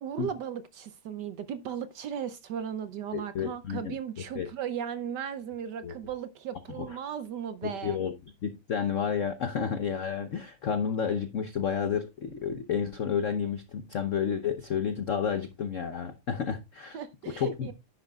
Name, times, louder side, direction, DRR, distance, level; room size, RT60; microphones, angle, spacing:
voice 1, 0.0-8.0 16.9-17.7, right 8 dB, 70° right, 1.1 m, -36 dB
voice 2, 3.1-3.9 4.3-4.5 5.8-5.9 6.8-6.9 7.6-8.1 8.4-17.0 17.3-17.7, left 7 dB, 65° left, 0.7 m, -31 dB
10.5 x 9.8 x 2.3 m
omnidirectional pair, 2.3 m